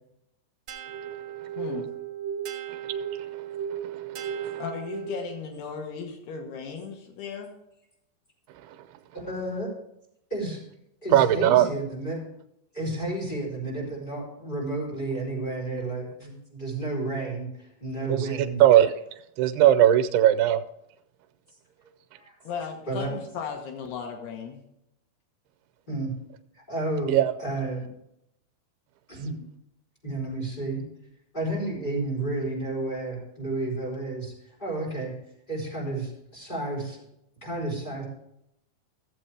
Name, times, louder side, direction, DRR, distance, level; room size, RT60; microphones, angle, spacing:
sound 1, 0.7-5.5, right 9 dB, 55° right, 2.3 m, -35 dB
voice 1, 1.6-1.9 4.6-7.5 22.4-24.6, left 6 dB, 85° left, 3 dB, 3.3 m, -36 dB
voice 2, 3.7-4.6 8.7-8.8 11.1-11.7 18.1-18.3 18.6-18.9 19.4-20.6 27.1-27.3, right 12 dB, 90° right, 9 dB, 2.6 m, -20 dB
voice 3, 9.1-9.7 10.3-10.6 11.0-12.2 12.7-17.5 17.8-18.6 22.1-22.3 22.9-23.1 25.9-26.1 26.7-27.9 29.1-29.4 30.0-30.8 31.3-34.3 34.6-35.1 35.5-37.0 37.4-38.0, right 2 dB, 10° left, -5 dB, 4.0 m, -31 dB
14.5 x 7.8 x 3.4 m, 0.80 s
omnidirectional pair, 4.4 m